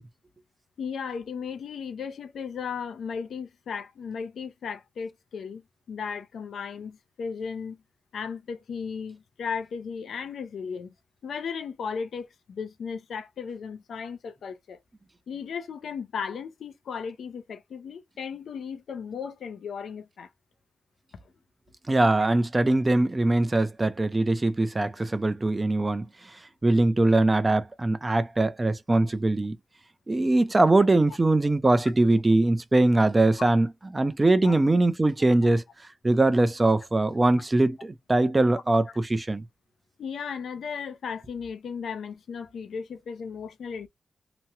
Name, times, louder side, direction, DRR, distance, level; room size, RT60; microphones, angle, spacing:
voice 1, 0.8-5.6 5.9-7.8 8.1-10.9 11.2-14.8 15.3-20.3 34.4-34.5 40.0-43.9, left 6 dB, 90° left, 0.6 m, -35 dB
voice 2, 21.9-26.0 26.6-29.6 30.1-35.6 36.0-39.4, right 2 dB, 25° right, 0.7 m, -22 dB
3.0 x 2.2 x 2.9 m
cardioid pair, 75°, 0 cm